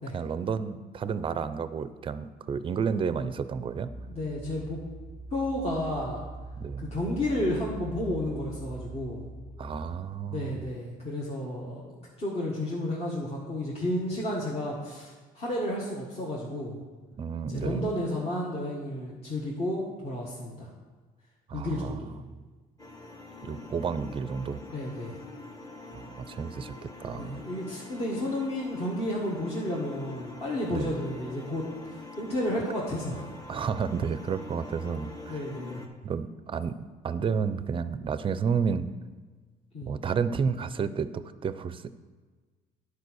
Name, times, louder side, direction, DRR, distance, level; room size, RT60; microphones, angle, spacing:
voice 1, 0.1-3.9 6.6-6.9 9.6-10.6 17.2-17.9 21.5-22.0 23.4-24.6 25.9-27.4 30.7-30.9 33.5-35.4 36.0-36.8 37.0-38.9 39.9-41.9, right 6 dB, 30° right, 13 dB, 0.5 m, -31 dB
sound 1, 3.8-9.9, right 3 dB, 65° left, 2.8 m, -42 dB
voice 2, 4.1-4.8 5.3-6.2 6.8-9.3 10.3-16.8 17.5-20.7 21.5-22.1 24.7-25.2 27.0-31.7 32.2-33.3 35.3-35.8 39.7-40.0, left 1 dB, 35° left, -5 dB, 1.7 m, -32 dB
sound 2, 22.8-35.9, left 3 dB, 20° left, 1.3 m, -45 dB
9.5 x 4.8 x 6.3 m, 1.4 s
cardioid pair, 110°, 17 cm